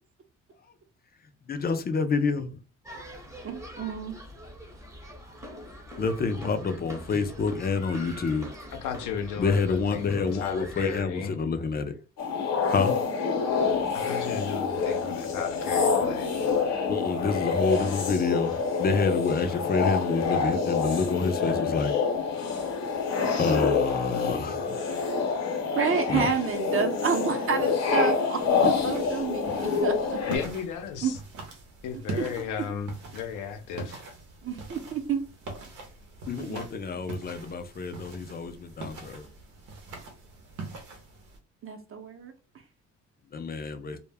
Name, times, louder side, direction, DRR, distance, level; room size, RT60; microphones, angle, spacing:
voice 1, 1.5-2.5 5.9-8.5 9.4-11.9 12.7-12.9 16.9-22.0 23.4-24.8 26.1-26.3 36.3-39.3 43.3-44.0, left 4 dB, 30° left, 0.4 m, -28 dB
sound 1, 2.8-11.0, equal, 10° right, 0.7 m, -44 dB
voice 2, 3.4-4.1 25.8-30.2 31.0-31.1 32.2-32.3 34.4-35.2 36.4-36.6 41.6-42.3, right 6 dB, 45° right, 0.7 m, -29 dB
voice 3, 8.7-11.3 13.9-16.3 30.3-31.2 31.8-34.0, left 7 dB, 90° left, 0.6 m, -35 dB
sound 2, 12.2-30.4, left 5 dB, 60° left, 0.8 m, -27 dB
sound 3, 28.4-41.4, right 3 dB, 90° right, 0.8 m, -42 dB
2.1 x 2.0 x 3.3 m
cardioid pair, 90°, 30 cm